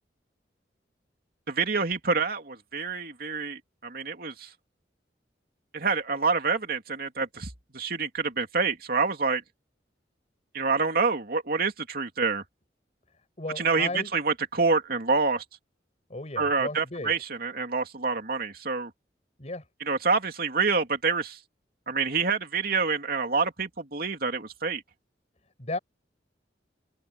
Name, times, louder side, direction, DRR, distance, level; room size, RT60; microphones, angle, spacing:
voice 1, 1.5-4.5 5.7-9.4 10.5-12.4 13.6-15.4 16.4-18.9 19.9-21.4 21.9-24.8, right 4 dB, 55° right, 2.8 m, -27 dB
voice 2, 13.4-14.1 16.1-17.1 19.4-19.6 25.6-25.8, left 2 dB, 40° left, 6.4 m, -34 dB
open air
head